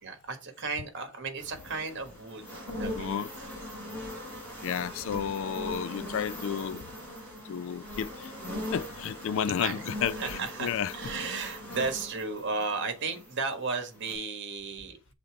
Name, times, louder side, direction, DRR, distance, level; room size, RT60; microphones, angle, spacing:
voice 1, 0.0-3.3 3.7-3.8 9.6-9.8 10.1-15.0, right 4 dB, 55° right, 1.5 m, -34 dB
sound 1, 1.4-13.5 13.9-14.1, left 1 dB, 5° left, 4.3 m, -40 dB
voice 2, 3.0-3.3 4.6-6.8 7.5-8.1 8.7-10.9, left 8 dB, 60° left, 0.3 m, -32 dB
6.9 x 3.8 x 4.7 m
head